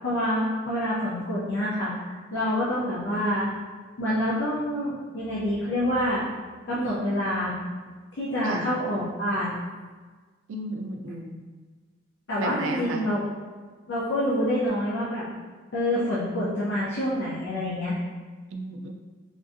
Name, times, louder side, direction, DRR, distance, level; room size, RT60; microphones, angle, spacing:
voice 1, 0.0-3.5 4.0-6.3 6.7-7.5 8.1-9.6 12.3-13.2 13.9-15.3 15.7-18.0, equal, 65° left, -8 dB, 0.6 m, -27 dB
voice 2, 10.5-11.4 12.4-13.0 18.5-18.9, right 2 dB, 85° right, 4 dB, 0.4 m, -33 dB
3.6 x 2.6 x 2.5 m, 1.4 s
head